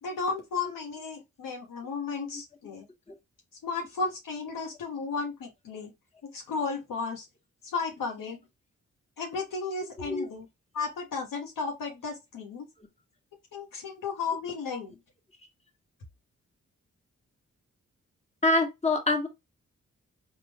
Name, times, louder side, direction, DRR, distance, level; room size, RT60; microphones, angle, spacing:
voice 1, 0.0-2.9 3.6-5.9 6.2-7.3 7.6-8.4 9.2-10.4 10.7-12.7 13.5-15.0, left 4 dB, 80° left, 1.1 m, -34 dB
voice 2, 18.4-19.3, left 2 dB, 20° left, 1.4 m, -25 dB
3.6 x 2.5 x 3.3 m
supercardioid pair, 40°, 32 cm